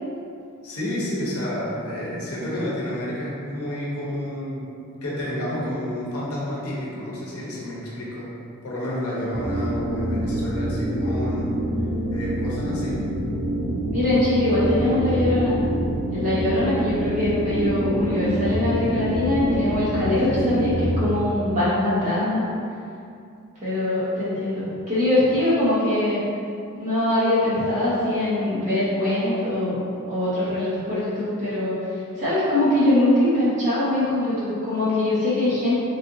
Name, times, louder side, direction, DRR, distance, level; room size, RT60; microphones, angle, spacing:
voice 1, 0.6-4.7 5.0-8.3 8.6-11.5 12.1-13.0 20.2-20.8, left 1 dB, 75° left, -6 dB, 0.8 m, -30 dB
sound 1, 9.3-21.0, equal, 75° right, 0.9 m, -26 dB
voice 2, 12.6-13.0 13.9-15.6 16.1-22.4 23.6-26.2 26.7-29.8 30.1-31.8 32.2-35.8, left 1 dB, 35° right, -11 dB, 1.1 m, -22 dB
3.3 x 2.5 x 2.7 m, 2.5 s
head